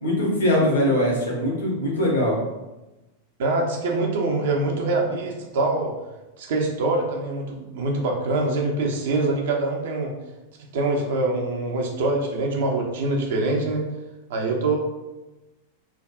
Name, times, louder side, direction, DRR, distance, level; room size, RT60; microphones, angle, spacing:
voice 1, 0.0-2.4, left 1 dB, 65° left, -3 dB, 0.9 m, -21 dB
voice 2, 3.4-5.9 6.4-10.1 10.7-13.8 14.3-14.8, right 2 dB, 55° right, 0 dB, 0.5 m, -24 dB
3.4 x 2.3 x 2.3 m, 1.1 s
figure-of-eight pair, 90°, 0 cm